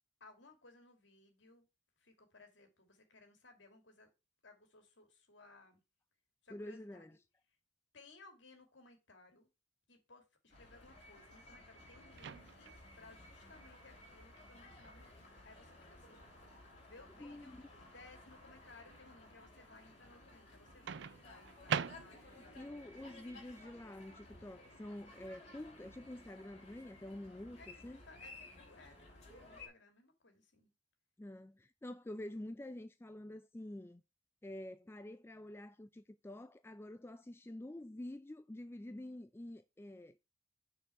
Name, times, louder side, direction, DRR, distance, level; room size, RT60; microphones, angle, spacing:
voice 1, 0.2-1.7 2.0-4.1 4.4-5.8 6.4-7.1 7.9-9.5 9.9-17.6 17.9-22.6 23.2-23.6 27.6-30.7, left 3 dB, 70° left, 2.4 m, -61 dB
voice 2, 6.5-7.1 17.2-17.7 22.2-28.0 31.2-34.0 34.4-40.2, left 1 dB, 10° left, 0.3 m, -48 dB
sound 1, 10.5-29.7, left 2 dB, 35° left, 3.4 m, -57 dB
Microwave oven, 12.2-12.8 14.8-15.1 20.9-22.5, right 7 dB, 65° right, 0.4 m, -41 dB
6.3 x 4.5 x 5.6 m
head